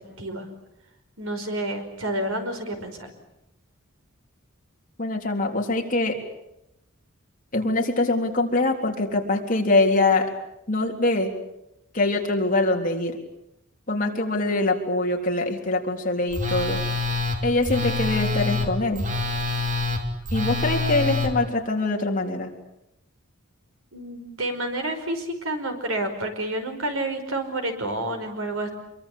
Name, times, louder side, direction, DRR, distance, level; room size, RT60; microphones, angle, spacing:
voice 1, 1.2-3.1 23.9-28.7, right 1 dB, 80° right, 6 dB, 5.2 m, -29 dB
voice 2, 5.0-6.2 7.5-10.3 10.7-11.3 11.9-13.2 13.9-16.8 17.4-19.0 20.3-22.5, left 2 dB, 40° left, 1 dB, 3.7 m, -23 dB
Telephone, 16.3-21.3, left 3 dB, 40° right, 3.3 m, -26 dB
26.0 x 23.5 x 8.6 m, 0.85 s
head